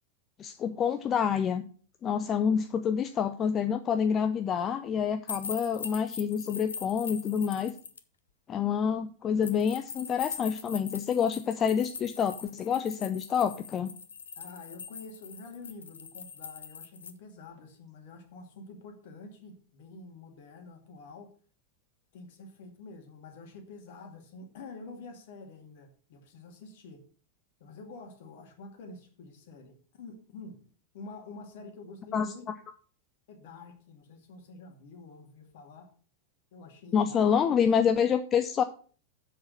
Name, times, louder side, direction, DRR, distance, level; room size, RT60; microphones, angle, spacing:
voice 1, 0.4-1.6 2.0-7.7 8.5-13.9 32.1-32.3 36.9-38.6, left 7 dB, 25° left, 9 dB, 0.6 m, -27 dB
sound 1, 5.3-8.0 9.4-17.1, left 6 dB, 70° left, 0.8 m, -42 dB
voice 2, 14.4-21.3 22.1-27.0 27.6-30.6 30.9-32.5 33.3-35.9 36.5-37.3, left 3 dB, 55° left, 5 dB, 2.2 m, -47 dB
7.7 x 6.4 x 6.2 m, 0.42 s
figure-of-eight pair, 90°, 0 cm